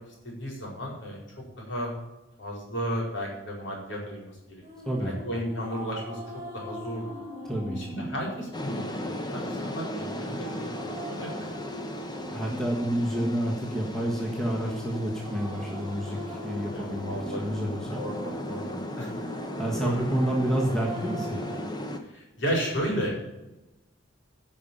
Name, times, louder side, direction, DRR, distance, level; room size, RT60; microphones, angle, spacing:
voice 1, 0.2-1.2 1.6-1.9 2.4-4.6 5.0-6.2 6.5-7.1 7.8-11.6 16.6-17.4 18.0-19.1 19.7-20.0 22.1-23.2, equal, 60° left, -2 dB, 4.5 m, -34 dB
sound 1, 4.6-21.7, equal, 15° right, 2.8 m, -42 dB
voice 2, 4.8-5.2 7.4-7.8 12.3-18.0 19.6-21.4, right 1 dB, ahead, -2 dB, 1.5 m, -29 dB
sound 2, 8.5-22.0, left 1 dB, 20° left, 0.9 m, -37 dB
11.0 x 5.5 x 8.6 m, 1.0 s
head